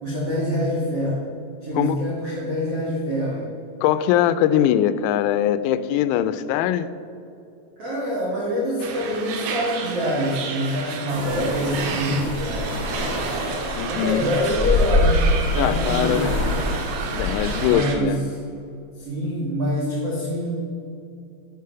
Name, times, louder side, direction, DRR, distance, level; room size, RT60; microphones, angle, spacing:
voice 1, 0.0-1.2 1.6-3.5 7.8-13.3 13.9-15.2 15.5-16.3 17.7-18.4 19.0-20.5, equal, 70° right, -6 dB, 1.4 m, -25 dB
voice 2, 3.8-6.9 13.8-14.3 15.6-16.3 17.1-18.2, left 11 dB, 90° left, 13 dB, 3.3 m, -21 dB
sound 1, 8.8-18.0, right 5 dB, 85° right, 3.9 m, -32 dB
sound 2, 11.1-17.7, left 1 dB, 30° right, 2.0 m, -25 dB
9.6 x 8.6 x 5.8 m, 2.7 s
omnidirectional pair, 6.0 m